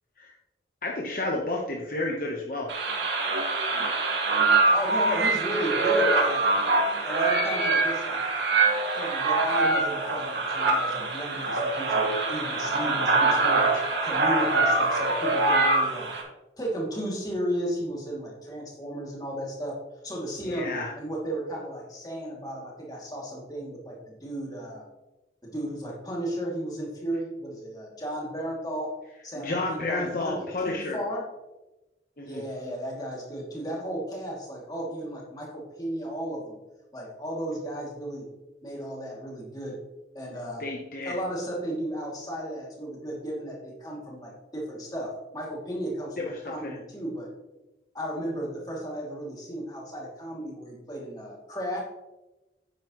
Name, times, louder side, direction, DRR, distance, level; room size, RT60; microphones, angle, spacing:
voice 1, 0.8-2.7 13.7-13.9 20.4-20.9 29.3-31.0 32.2-32.4 40.6-41.2 46.2-46.8, left 2 dB, 50° left, 0 dB, 1.1 m, -31 dB
sound 1, 2.7-16.2, right 3 dB, 85° right, 2.1 m, -24 dB
voice 2, 4.7-6.5 7.0-8.2 8.9-13.7 14.0-16.1 16.6-19.8 20.0-24.8 25.4-28.9 29.2-31.2 32.2-36.6 36.9-38.3 38.6-39.8 40.1-40.6 41.0-47.3 47.9-51.8, right 1 dB, 20° left, -3 dB, 2.6 m, -34 dB
9.8 x 9.2 x 3.1 m, 1.0 s
head